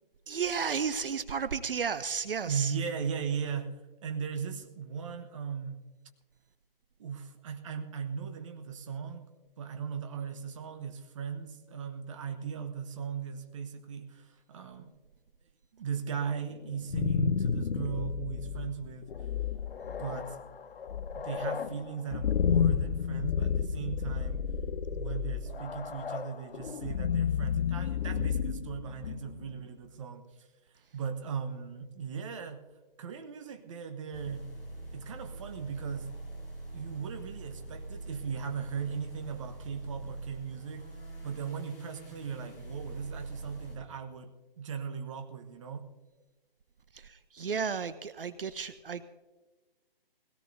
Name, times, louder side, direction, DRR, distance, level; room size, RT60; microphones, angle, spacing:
voice 1, 0.3-2.7 46.9-49.0, right 6 dB, 65° right, 13 dB, 0.7 m, -33 dB
voice 2, 2.4-3.8 4.0-5.8 7.0-9.3 9.6-14.9 15.7-19.1 20.0-20.4 21.1-24.4 24.9-30.2 30.9-32.6 33.0-34.4 34.9-36.1 36.7-40.9 41.2-45.9, right 6 dB, 30° right, 6 dB, 1.1 m, -37 dB
sound 1, 16.6-29.5, left 7 dB, 75° left, 0.6 m, -31 dB
sound 2, 34.1-43.8, right 2 dB, 10° left, 4.4 m, -43 dB
20.5 x 17.0 x 2.7 m, 1.2 s
figure-of-eight pair, 150°, 30 cm